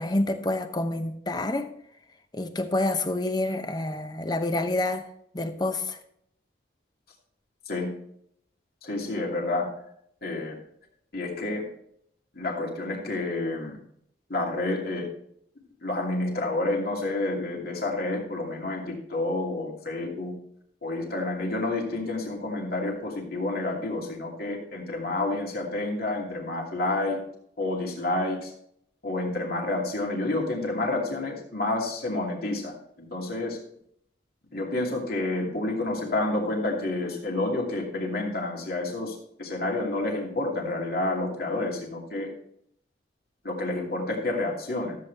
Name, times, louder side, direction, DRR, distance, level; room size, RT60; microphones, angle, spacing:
voice 1, 0.0-1.7 2.3-5.1 5.3-6.0, left 2 dB, 20° left, 0.8 m, -28 dB
voice 2, 8.8-9.7 10.2-10.6 11.1-11.6 12.3-13.8 14.3-15.1 15.8-20.3 20.8-27.2 27.6-28.5 29.0-33.6 34.5-42.3 43.4-45.0, left 2 dB, 55° left, 2.6 m, -29 dB
13.5 x 8.4 x 3.4 m
head